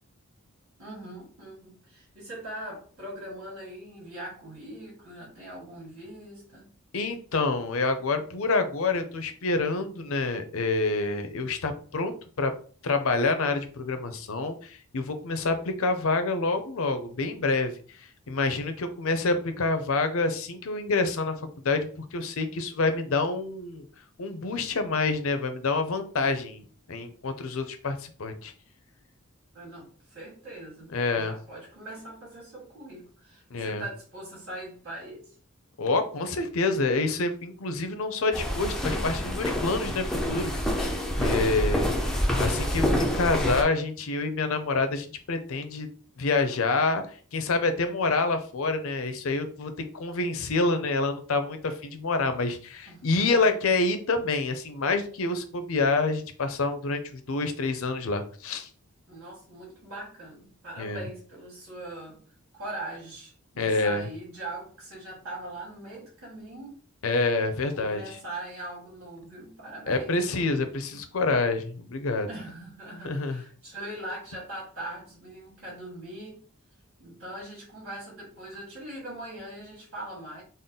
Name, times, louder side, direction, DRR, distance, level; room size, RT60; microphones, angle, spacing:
voice 1, 0.8-6.7 29.5-35.3 41.5-41.7 52.9-53.5 59.1-62.2 62.5-66.8 67.5-70.2 72.3-76.4 77.0-80.4, right 1 dB, 75° right, -6 dB, 1.8 m, -41 dB
voice 2, 6.9-12.5 12.8-23.9 24.2-28.5 30.9-31.3 33.5-33.8 35.8-45.9 46.2-47.0 47.3-58.7 60.8-61.0 63.6-64.1 67.0-68.0 69.9-72.3 73.0-73.4, left 3 dB, 65° left, 8 dB, 0.6 m, -27 dB
sound 1, 38.3-43.6, equal, ahead, 0.4 m, -27 dB
3.7 x 2.0 x 3.9 m, 0.43 s
head